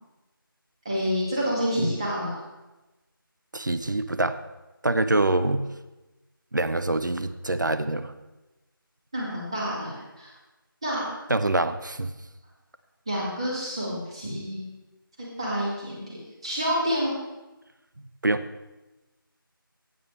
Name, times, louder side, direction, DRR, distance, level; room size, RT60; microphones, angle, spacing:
voice 1, 0.8-2.4 9.1-10.3 10.8-11.0 13.1-14.6 15.4-16.2 16.4-17.2, equal, 15° right, -5 dB, 2.1 m, -28 dB
voice 2, 3.5-4.4 4.8-5.7 6.5-8.1 11.3-12.1 18.2-18.5, right 2 dB, 55° right, 11 dB, 0.8 m, -25 dB
16.0 x 9.5 x 3.3 m, 1.1 s
figure-of-eight pair, 175°, 12 cm